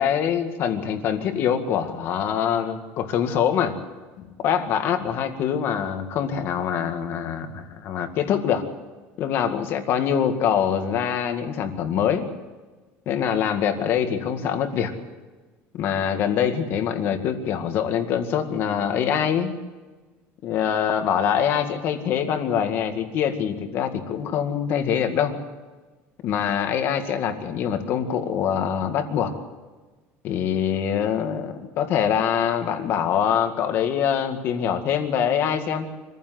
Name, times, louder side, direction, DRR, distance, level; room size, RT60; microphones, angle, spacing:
voice 1, 0.0-3.7 4.4-8.6 9.2-12.3 13.1-14.9 15.7-19.5 20.4-25.3 26.2-29.3 30.2-35.9, left 8 dB, 45° left, 6 dB, 2.0 m, -24 dB
25.0 x 15.5 x 7.8 m, 1.3 s
cardioid pair, 175°, 6 cm